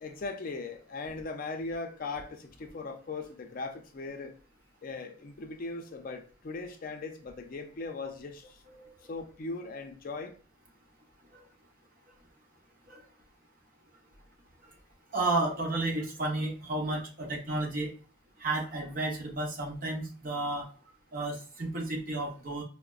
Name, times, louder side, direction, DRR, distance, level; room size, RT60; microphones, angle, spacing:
voice 1, 0.0-4.3 4.8-8.6 9.1-10.3, left 3 dB, 45° left, 0.4 m, -39 dB
voice 2, 15.1-17.9 18.4-20.7 21.1-22.6, right 2 dB, 45° right, 0.9 m, -32 dB
4.8 x 2.1 x 2.3 m
head